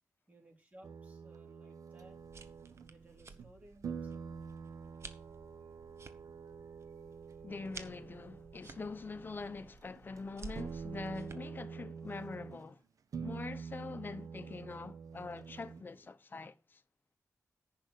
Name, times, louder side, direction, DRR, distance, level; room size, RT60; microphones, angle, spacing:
voice 1, 0.3-2.2 2.8-4.3, right 1 dB, 25° right, 3.7 m, -60 dB
sound 1, 0.8-3.5 3.8-9.7 10.0-10.2 10.5-12.7 13.1-16.0, right 6 dB, 80° right, 0.7 m, -47 dB
sound 2, 2.0-11.3, right 4 dB, 50° right, 1.0 m, -53 dB
voice 2, 7.4-12.8 13.2-16.8, left 4 dB, 35° left, 0.8 m, -44 dB
10.5 x 5.6 x 6.5 m
wide cardioid pair, 150°, 6 cm